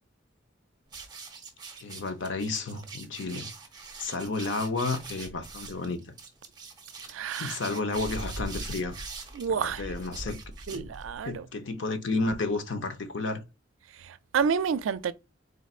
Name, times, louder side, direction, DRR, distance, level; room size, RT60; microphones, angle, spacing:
sound 1, 0.9-11.3, right 3 dB, 20° right, 0.9 m, -42 dB
voice 1, 1.8-3.5 4.0-6.0 7.4-9.0 9.5-10.4 10.7-10.9 11.2-13.4, left 3 dB, 70° left, 0.7 m, -31 dB
voice 2, 7.1-7.6 9.3-9.8 10.7-11.5 14.0-15.1, right 6 dB, 85° right, 0.4 m, -29 dB
4.2 x 3.9 x 2.4 m
head